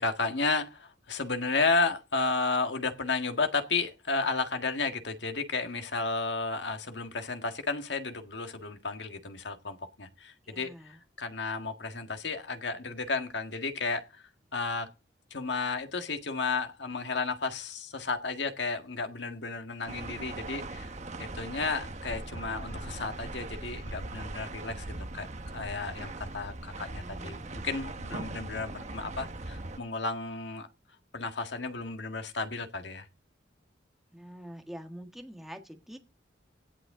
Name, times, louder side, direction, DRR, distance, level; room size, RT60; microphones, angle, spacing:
voice 1, 0.0-14.2 14.5-14.9 15.3-20.9 21.2-24.8 25.1-25.3 25.5-30.7 31.1-33.1, left 3 dB, 70° left, 1.7 m, -33 dB
voice 2, 10.4-11.0 26.8-27.6 34.1-36.0, equal, ahead, 1.6 m, -46 dB
sound 1, 19.9-29.8, right 2 dB, 40° right, 1.0 m, -40 dB
17.0 x 8.0 x 3.8 m
head